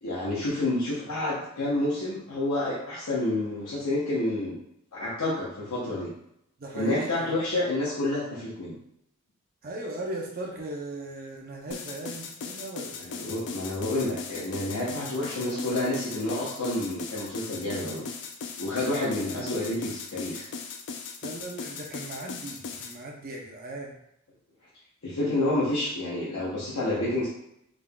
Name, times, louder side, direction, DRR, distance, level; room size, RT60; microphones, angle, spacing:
voice 1, 0.0-4.6 4.9-6.1 6.7-8.8 13.0-18.1 18.6-20.5 25.0-27.3, left 1 dB, 80° left, -7 dB, 0.8 m, -29 dB
voice 2, 6.6-7.4 9.6-13.0 21.2-24.0, right 1 dB, 45° right, -1 dB, 0.6 m, -38 dB
sound 1, 11.7-23.0, left 5 dB, 55° left, 0.4 m, -38 dB
3.7 x 3.6 x 2.3 m, 0.77 s
head